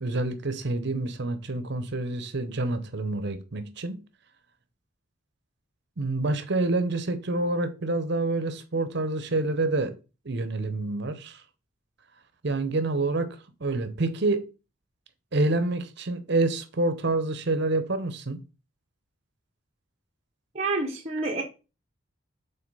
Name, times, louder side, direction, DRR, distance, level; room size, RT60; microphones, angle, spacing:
voice 1, 0.0-4.0 6.0-9.9 10.2-11.4 12.4-13.3 13.6-14.4 15.3-18.4, right 2 dB, 60° right, 0.8 m, -27 dB
voice 2, 20.5-21.4, right 3 dB, 35° right, 0.9 m, -28 dB
5.6 x 4.0 x 5.4 m
head